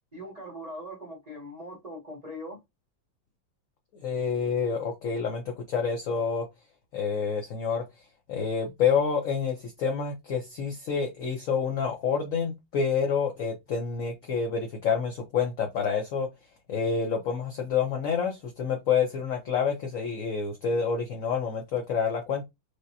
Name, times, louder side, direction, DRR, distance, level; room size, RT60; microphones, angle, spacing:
voice 1, 0.1-2.6, equal, 25° right, 0.9 m, -41 dB
voice 2, 4.0-6.5 6.9-7.8 8.3-16.3 16.7-22.4, left 6 dB, 65° left, 0.8 m, -28 dB
4.9 x 2.1 x 2.7 m
omnidirectional pair, 2.1 m